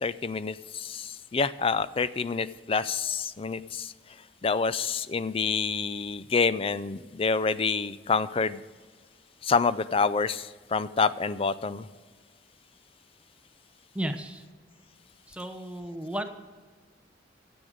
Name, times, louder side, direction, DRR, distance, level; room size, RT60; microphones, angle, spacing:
voice 1, 0.0-3.9 4.4-8.6 9.4-11.9, left 5 dB, 30° left, 15 dB, 0.4 m, -27 dB
voice 2, 13.9-14.4 15.3-16.3, right 1 dB, 5° right, 6 dB, 0.8 m, -34 dB
13.5 x 7.9 x 5.0 m, 1.5 s
head